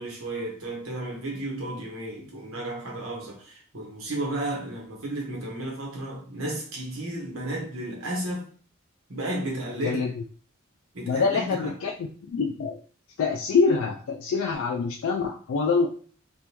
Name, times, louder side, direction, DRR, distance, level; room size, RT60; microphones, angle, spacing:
voice 1, 0.0-8.5 9.1-10.1 10.9-11.7, right 1 dB, 85° right, 1.3 m, -33 dB
voice 2, 9.8-10.1 11.1-11.9 12.3-12.8 13.2-15.9, left 4 dB, 70° left, 0.4 m, -25 dB
3.5 x 2.6 x 2.9 m
head